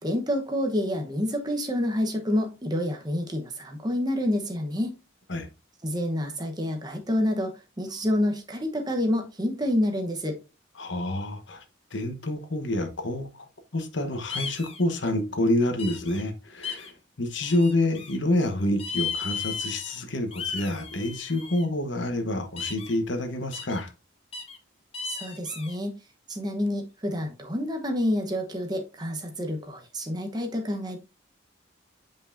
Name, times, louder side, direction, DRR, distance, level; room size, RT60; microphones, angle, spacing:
voice 1, 0.0-5.0 5.8-10.4 25.0-25.9 26.3-31.0, left 1 dB, 20° right, 0.9 m, -28 dB
voice 2, 10.8-11.6 11.9-13.5 13.7-23.9, left 1 dB, 70° left, 1.0 m, -28 dB
sound 1, 14.3-14.8 15.8-16.2 16.6-16.9 17.4-18.2 18.8-20.0 20.3-21.6 22.6-23.0 23.5-23.8 24.3-24.6 24.9-25.7, left 6 dB, 30° left, 0.9 m, -35 dB
7.8 x 5.3 x 2.6 m
head